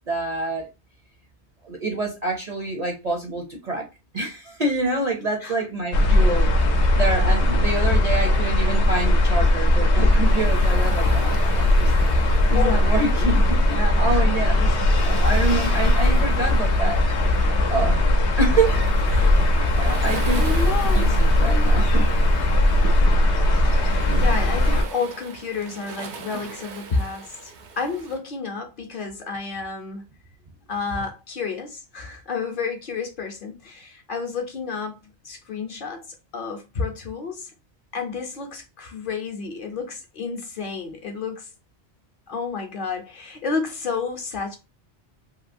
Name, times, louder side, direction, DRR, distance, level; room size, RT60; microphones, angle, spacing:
voice 1, 0.1-0.6 1.6-3.8 4.1-6.5 6.9-11.9 12.5-14.7 15.0-17.0 17.7-18.1 18.4-18.7 19.1-20.4 20.9-22.1 24.1-24.3 29.1-29.2, right 2 dB, 45° right, 0.6 m, -27 dB
sound 1, 5.9-24.8, left 1 dB, 80° left, 0.9 m, -19 dB
Waves surf, 10.2-28.2, right 4 dB, 80° right, 1.0 m, -41 dB
voice 2, 12.5-13.3 14.1-14.3 19.8-21.1 23.6-30.0 30.7-35.0 35.2-36.1 36.3-37.5 37.9-41.5 42.3-44.6, left 4 dB, 55° left, 0.8 m, -31 dB
2.9 x 2.7 x 2.5 m
omnidirectional pair, 1.2 m